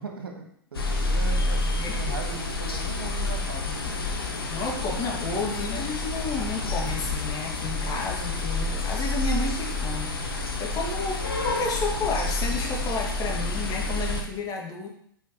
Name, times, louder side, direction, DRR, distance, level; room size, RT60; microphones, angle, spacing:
voice 1, 0.0-4.9 5.3-5.5, right 4 dB, 75° right, 3 dB, 1.4 m, -40 dB
sound 1, 0.7-14.2, left 2 dB, 80° left, 1.1 m, -29 dB
voice 2, 1.8-2.1 4.5-14.9, left 3 dB, 30° left, 0 dB, 1.8 m, -31 dB
5.7 x 4.8 x 4.5 m, 0.66 s
figure-of-eight pair, 100°, 12 cm